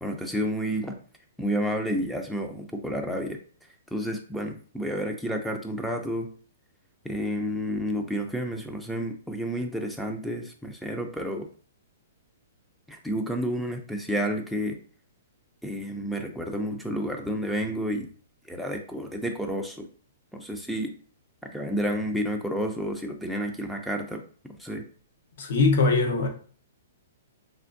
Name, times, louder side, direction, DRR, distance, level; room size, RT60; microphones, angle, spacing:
voice 1, 0.0-1.0 1.4-3.4 3.9-6.3 7.0-11.5 12.9-14.8 15.6-18.1 18.4-19.9 20.3-20.9 21.4-24.2 24.6-24.8, equal, ahead, 0.4 m, -30 dB
voice 2, 25.4-26.3, left 3 dB, 60° left, 0.8 m, -21 dB
3.4 x 2.5 x 2.5 m
hypercardioid pair, 150°, 0 cm